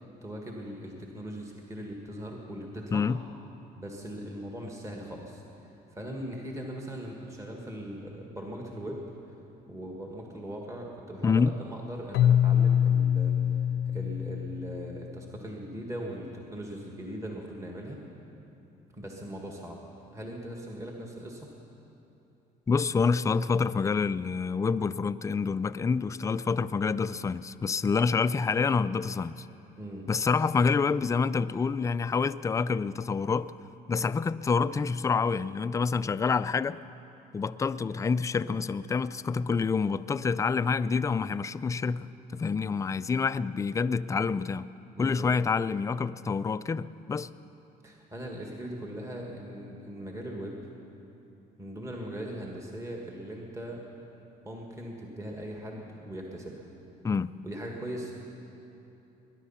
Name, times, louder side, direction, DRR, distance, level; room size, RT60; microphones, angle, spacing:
voice 1, 0.0-3.1 3.8-9.0 9.7-18.0 18.9-19.8 20.1-21.5 29.8-30.1 44.9-45.3 47.8-50.6 51.6-53.8 54.4-56.7 57.4-58.2, right 1 dB, 20° right, 1.8 m, -40 dB
voice 2, 11.2-11.6 22.7-29.5 30.1-33.5 33.9-36.8 37.3-44.7 45.0-47.3 57.0-57.3, left 5 dB, 20° left, 0.3 m, -27 dB
Keyboard (musical), 12.1-15.1, left 9 dB, 75° left, 0.7 m, -24 dB
21.0 x 11.0 x 5.7 m
cardioid pair, 110°, 17 cm